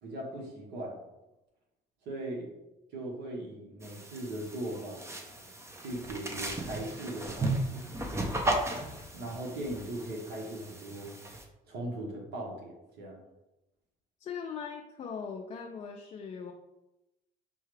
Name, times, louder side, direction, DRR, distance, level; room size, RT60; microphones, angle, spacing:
voice 1, 0.0-1.0 2.0-2.5 2.9-5.0 5.8-7.8 9.1-11.2 11.7-13.2, right 1 dB, 80° right, -2 dB, 1.2 m, -39 dB
sound 1, 3.8-11.4, right 1 dB, 15° right, 0.6 m, -36 dB
voice 2, 14.2-16.5, left 6 dB, 40° left, 1 dB, 0.4 m, -40 dB
5.5 x 2.3 x 3.2 m, 0.95 s
cardioid pair, 110°, 17 cm